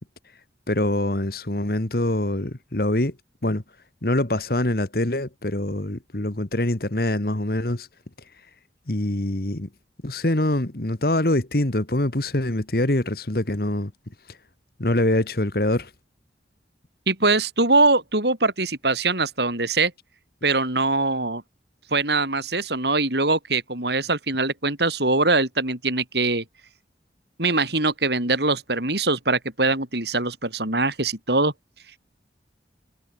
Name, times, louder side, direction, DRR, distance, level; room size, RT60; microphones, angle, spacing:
voice 1, 0.7-3.1 3.4-3.6 4.0-7.9 8.9-9.7 10.0-13.9 14.8-15.9, left 1 dB, 55° left, 1.8 m, -24 dB
voice 2, 17.1-19.9 20.4-21.4 21.9-26.4 27.4-31.5, right 3 dB, 70° right, 5.6 m, -22 dB
head